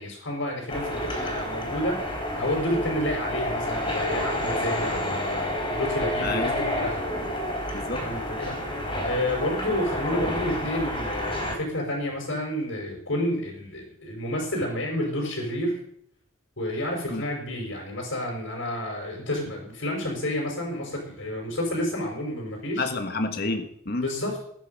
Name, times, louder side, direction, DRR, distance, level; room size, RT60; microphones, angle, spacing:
voice 1, 0.0-7.0 8.0-8.7 9.0-15.8 16.6-22.9 24.0-24.4, left 1 dB, 75° left, -1 dB, 4.7 m, -30 dB
sound 1, 0.7-11.6, left 1 dB, 25° left, 4.0 m, -29 dB
voice 2, 6.2-6.5 7.7-8.0 17.1-17.2 22.8-24.1, left 2 dB, 50° left, 7 dB, 1.4 m, -29 dB
20.5 x 9.5 x 5.3 m, 0.69 s
head